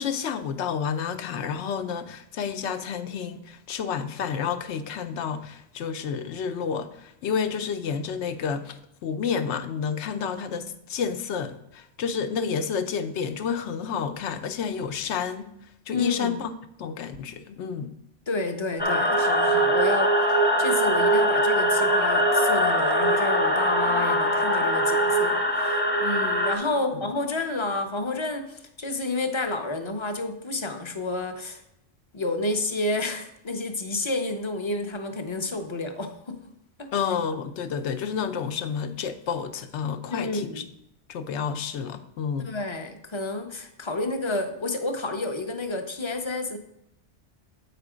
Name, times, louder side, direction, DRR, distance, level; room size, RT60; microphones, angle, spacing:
voice 1, 0.0-15.5 15.9-16.5 16.8-17.9 26.6-27.1 36.9-40.6 41.1-42.5, left 6 dB, 75° left, 10 dB, 0.9 m, -30 dB
voice 2, 15.9-16.4 18.3-31.6 32.1-36.4 36.8-36.9 40.1-40.6 42.4-46.6, left 2 dB, 30° left, 6 dB, 0.6 m, -30 dB
sound 1, 18.8-26.6, equal, 10° left, 1.1 m, -22 dB
8.1 x 5.0 x 4.9 m, 0.78 s
omnidirectional pair, 1.2 m